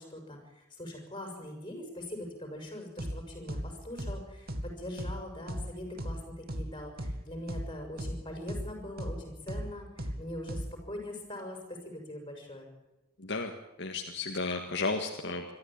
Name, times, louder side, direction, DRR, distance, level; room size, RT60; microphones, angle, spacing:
voice 1, 0.0-12.7, left 1 dB, 20° left, 3 dB, 6.3 m, -42 dB
sound 1, 3.0-3.2 3.5-3.7 4.0-4.2 4.5-4.7 5.0-5.2 5.5-5.7 6.0-6.2 6.5-6.7 7.0-7.2 7.5-7.7 8.0-8.2 8.5-8.7 9.0-9.2 9.5-9.7 10.0-10.2 10.5-10.7, equal, 50° right, 2.1 m, -35 dB
voice 2, 13.2-13.5 13.8-15.5, left 3 dB, 55° left, 3 dB, 1.8 m, -33 dB
24.5 x 13.5 x 8.9 m, 0.97 s
head